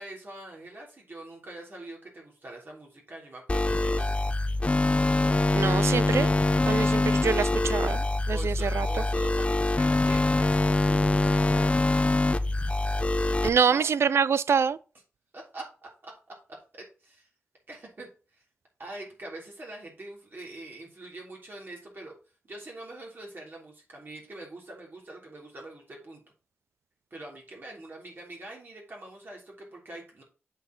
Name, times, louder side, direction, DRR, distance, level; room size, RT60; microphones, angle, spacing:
voice 1, 0.0-4.1 8.3-11.4 13.7-13.9 15.3-17.3 17.7-18.1 18.3-18.4 18.8-22.1 22.5-26.2 27.1-30.2, right 2 dB, 45° right, 3.2 m, -44 dB
sound 1, 3.5-13.5, left 2 dB, 25° left, 0.7 m, -24 dB
voice 2, 5.5-6.3 6.7-8.9 13.4-14.8, right 6 dB, 65° right, 0.4 m, -25 dB
8.0 x 4.7 x 4.0 m
cardioid pair, 70°, 5 cm